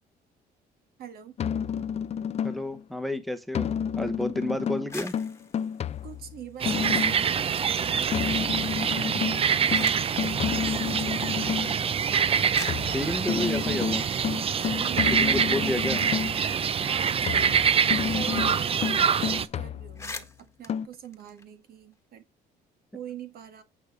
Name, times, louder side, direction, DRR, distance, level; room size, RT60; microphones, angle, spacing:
voice 1, 1.0-1.4 6.0-7.5 7.8-10.2 10.5-11.5 14.7-15.3 16.8-17.5 18.1-22.3 22.9-23.6, right 9 dB, 65° right, 1.9 m, -44 dB
sound 1, 1.4-2.8 3.5-7.3 8.1-11.8 12.7-16.5 17.3-20.2 20.7-20.9, left 8 dB, 40° left, 0.5 m, -30 dB
voice 2, 2.4-3.7 4.0-5.1 12.9-14.1 15.1-16.0, left 1 dB, ahead, 1.0 m, -30 dB
sound 2, 4.7-7.3 7.7-8.4 9.1-10.2 11.3-11.4 12.1-12.2 12.5-14.8 15.2-15.3 15.6-18.2 18.4-18.6 18.8-19.1 19.5-19.6 19.8-22.0, left 3 dB, 15° left, 1.5 m, -46 dB
sound 3, 6.6-19.4, right 7 dB, 35° right, 0.6 m, -25 dB
9.2 x 4.9 x 4.9 m
cardioid pair, 110°, 17 cm